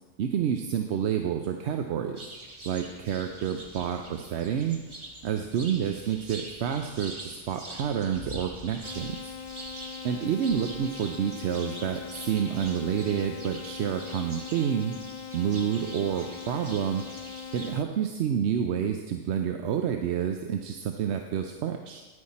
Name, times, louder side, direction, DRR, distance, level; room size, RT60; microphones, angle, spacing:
voice 1, 0.2-2.3 2.6-4.8 5.2-9.4 10.0-14.9 15.3-17.0 17.5-22.0, right 8 dB, 65° right, 5 dB, 0.9 m, -29 dB
sound 1, 2.2-17.8, right 1 dB, 25° right, 1.0 m, -44 dB
sound 2, 8.8-17.8, left 7 dB, 75° left, 0.4 m, -41 dB
10.0 x 9.6 x 4.2 m, 1.3 s
omnidirectional pair, 1.3 m